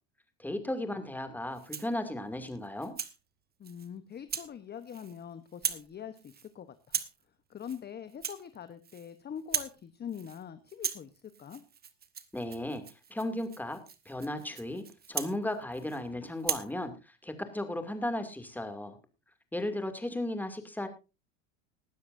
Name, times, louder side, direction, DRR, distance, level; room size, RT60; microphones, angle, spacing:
voice 1, 0.4-2.9 12.3-12.8 13.1-13.8 14.1-19.0 19.5-20.9, left 1 dB, 5° left, 7 dB, 2.5 m, -35 dB
Rattle (instrument), 1.5-2.0 2.5-3.2 3.6-3.9 4.3-4.5 4.8-5.2 5.5-5.9 6.2-6.5 6.8-7.2 7.6-7.8 8.1-9.1 9.4-9.8 10.1-10.4 10.7-16.0 16.4-16.7, right 7 dB, 25° right, 1.3 m, -38 dB
voice 2, 3.6-7.0 7.5-11.6, left 8 dB, 25° left, 12 dB, 1.0 m, -43 dB
19.0 x 12.5 x 2.6 m, 0.28 s
supercardioid pair, 100°, 39 cm